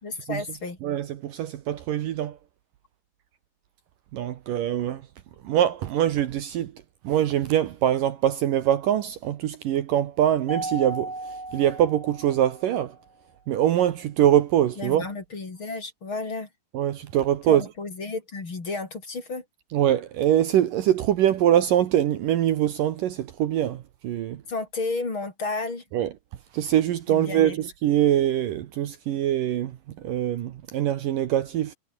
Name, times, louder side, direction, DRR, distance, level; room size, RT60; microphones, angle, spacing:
voice 1, 0.0-0.8 14.8-16.5 17.5-19.4 24.5-25.8 27.1-27.6, left 3 dB, 30° left, 4.3 m, -32 dB
voice 2, 0.8-2.4 4.1-5.0 5.4-6.7 7.0-11.1 11.5-13.0 13.5-15.1 16.7-17.6 19.7-24.4 25.9-26.1 26.5-31.7, right 11 dB, 65° right, 2.6 m, -23 dB
Mallet percussion, 10.5-12.9, right 2 dB, 10° right, 3.3 m, -35 dB
omnidirectional pair, 4.6 m